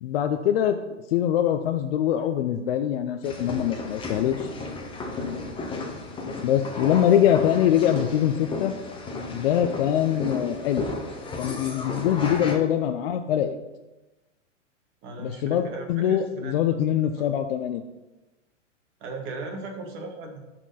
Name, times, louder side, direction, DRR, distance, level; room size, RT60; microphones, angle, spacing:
voice 1, 0.0-0.8 1.1-4.5 6.4-8.7 9.3-10.9 11.4-13.6 15.2-17.8, left 10 dB, 50° left, 7 dB, 0.6 m, -23 dB
sound 1, 3.2-12.5, left 3 dB, 15° left, 1.2 m, -34 dB
voice 2, 5.0-5.5 15.0-17.4 19.0-20.4, right 3 dB, 35° right, 2 dB, 1.7 m, -38 dB
12.5 x 4.5 x 4.1 m, 1.1 s
hypercardioid pair, 120°, 37 cm